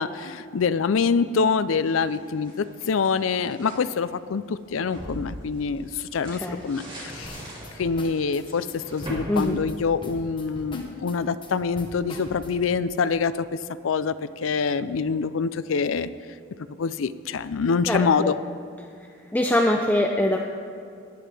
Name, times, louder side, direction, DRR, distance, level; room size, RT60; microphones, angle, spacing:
voice 1, 0.0-7.4 7.8-16.1 16.8-18.4, left 5 dB, 75° left, 14 dB, 0.4 m, -25 dB
sound 1, 1.9-3.8 4.4-10.4, equal, 25° right, 3.2 m, -40 dB
sound 2, 7.2-12.8, left 1 dB, 25° left, 1.2 m, -42 dB
voice 2, 17.9-18.3 19.3-20.4, left 1 dB, 10° left, 1 dB, 0.5 m, -23 dB
18.5 x 9.6 x 3.4 m, 2.4 s
head